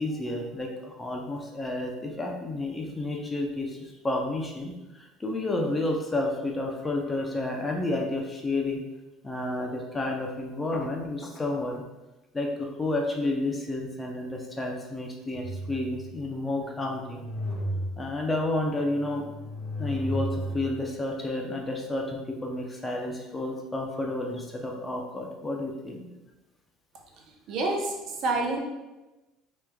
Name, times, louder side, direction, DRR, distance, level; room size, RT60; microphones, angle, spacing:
voice 1, 0.0-8.8 9.2-11.8 12.3-17.3 18.0-19.3 19.8-26.0, left 2 dB, 15° left, 1 dB, 0.6 m, -31 dB
sound 1, 15.3-16.2 16.7-18.3 18.9-20.8, equal, 80° left, 0.7 m, -34 dB
voice 2, 27.5-27.9 28.2-28.6, right 2 dB, 60° right, 1 dB, 0.7 m, -26 dB
4.7 x 3.1 x 2.2 m, 1.1 s
supercardioid pair, 115°, 0 cm